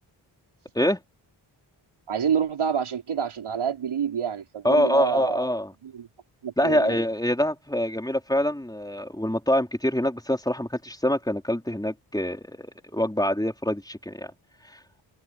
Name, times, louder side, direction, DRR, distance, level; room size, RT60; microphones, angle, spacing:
voice 1, 2.1-5.5 5.8-6.1 6.4-7.0, right 7 dB, 85° right, 4.5 m, -27 dB
voice 2, 4.6-5.7 6.6-14.3, left 1 dB, 10° left, 3.9 m, -25 dB
cardioid pair, 60°, 48 cm